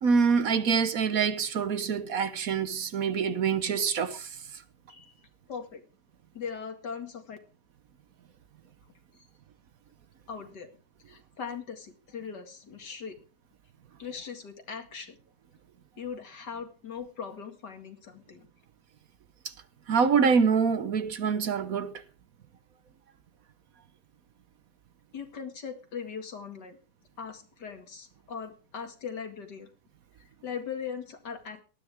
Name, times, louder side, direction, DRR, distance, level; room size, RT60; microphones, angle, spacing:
voice 1, 0.0-4.6 19.9-21.9, right 6 dB, 60° right, 1.3 m, -25 dB
voice 2, 5.5-5.8 6.3-7.4 10.3-10.7 11.1-13.2 14.0-15.2 16.0-18.5 25.1-26.8 27.2-29.7 30.2-31.6, left 6 dB, 75° left, 2.7 m, -40 dB
18.5 x 13.0 x 3.5 m
omnidirectional pair, 1.8 m